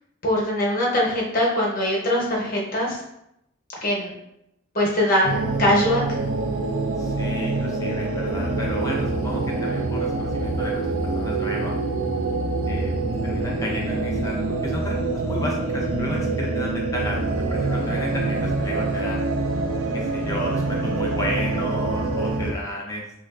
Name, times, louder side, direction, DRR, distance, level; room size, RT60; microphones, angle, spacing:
voice 1, 0.2-3.0 3.8-4.1 4.7-6.2, left 1 dB, 45° left, -3 dB, 0.8 m, -22 dB
sound 1, 5.2-22.5, right 3 dB, 80° right, 0.4 m, -25 dB
voice 2, 7.0-11.7 12.7-12.9 13.2-15.0 15.2-19.3 19.9-23.0, left 1 dB, 15° left, -2 dB, 0.4 m, -32 dB
3.8 x 2.4 x 2.3 m, 0.82 s
head